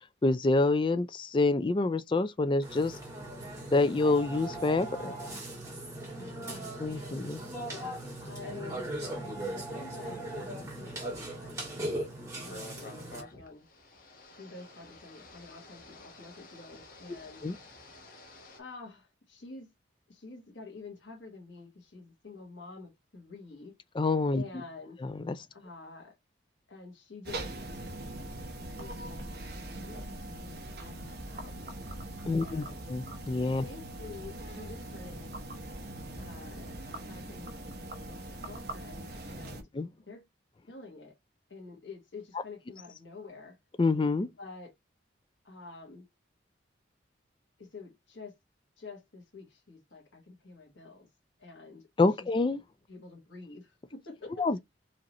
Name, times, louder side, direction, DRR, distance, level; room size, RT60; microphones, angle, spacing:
voice 1, 0.2-3.0 3.7-5.1 6.8-7.4 17.4-17.5 24.0-24.4 25.0-25.4 32.3-33.6 39.7-39.9 43.8-44.3 52.0-52.6 54.4-54.6, left 3 dB, 25° left, 0.3 m, -27 dB
Burping eructation, 2.6-13.2, right 1 dB, 15° right, 1.9 m, -39 dB
voice 2, 6.1-6.7 7.2-7.3 7.7-11.9 12.2-13.7 14.4-17.5 18.6-19.7 20.1-23.8 24.3-25.0 25.5-26.1 26.7-27.8 28.7-29.3 29.7-31.6 32.3-32.9 33.6-35.4 36.1-39.7 40.1-40.3 40.7-41.1 41.5-43.6 44.4-44.7 45.4-46.1 47.6-48.4 48.8-51.1 51.4-51.9 52.2-52.3 52.9-54.6, left 3 dB, 85° left, 1.7 m, -48 dB
sound 1, 12.3-18.6, left 2 dB, 45° left, 1.2 m, -51 dB
sound 2, 27.2-39.6, right 1 dB, 55° right, 1.0 m, -41 dB
4.9 x 2.9 x 3.0 m
head